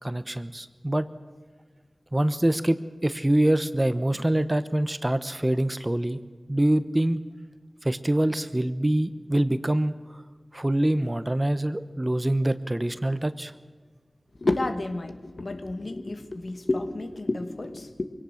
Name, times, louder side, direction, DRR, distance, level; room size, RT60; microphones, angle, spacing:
voice 1, 0.0-1.1 2.1-2.8 3.0-6.2 6.5-7.2 7.8-10.2 10.5-13.5, right 1 dB, 25° right, 12 dB, 1.0 m, -25 dB
voice 2, 14.4-18.0, left 2 dB, 70° left, 8 dB, 1.5 m, -30 dB
23.5 x 17.5 x 6.5 m, 1.4 s
wide cardioid pair, 50°, 0 cm